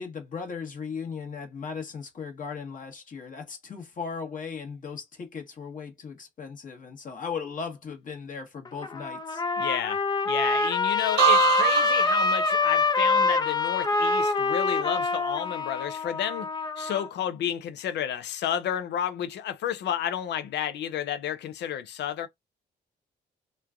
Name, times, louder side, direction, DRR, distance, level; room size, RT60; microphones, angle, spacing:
voice 1, 0.0-9.4, left 5 dB, 50° left, 1.1 m, -37 dB
Trumpet, 8.7-17.1, left 4 dB, 25° left, 0.5 m, -25 dB
voice 2, 9.6-16.5 16.8-22.3, left 10 dB, 80° left, 0.6 m, -31 dB
sound 1, 11.2-15.0 15.4-15.8, right 13 dB, 75° right, 0.6 m, -28 dB
3.1 x 2.3 x 2.3 m
cardioid pair, 80°, 18 cm